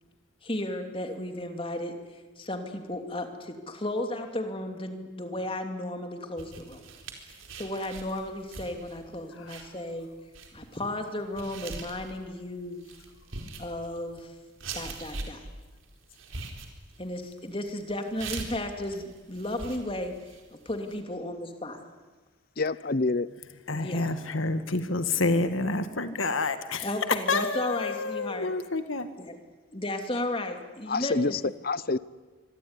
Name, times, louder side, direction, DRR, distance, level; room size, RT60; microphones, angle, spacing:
voice 1, 0.4-2.0 2.4-6.8 7.6-10.1 10.5-12.8 13.6-14.3 14.7-15.4 17.0-20.1 20.6-21.8 23.7-24.1 26.8-28.5 29.3-29.4 29.7-31.4, left 1 dB, 25° left, 3.0 m, -34 dB
sound 1, 6.4-21.0, right 3 dB, 85° right, 4.4 m, -42 dB
voice 2, 22.6-23.3 30.9-32.0, left 3 dB, 50° left, 0.8 m, -27 dB
voice 3, 23.7-26.9 27.3-29.0, left 3 dB, 85° left, 1.8 m, -28 dB
25.0 x 24.5 x 9.9 m
head